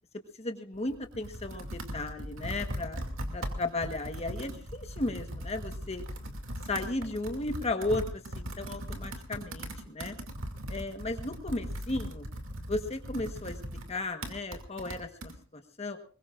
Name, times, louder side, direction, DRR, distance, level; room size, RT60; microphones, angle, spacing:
voice 1, 0.4-3.0 3.3-6.0 6.7-10.1 10.7-12.3 12.7-13.6 13.9-16.0, left 2 dB, 35° left, 6 dB, 1.3 m, -35 dB
Computer keyboard, 0.7-15.3, equal, 75° right, 2.5 m, -39 dB
23.0 x 21.0 x 2.5 m, 0.40 s
head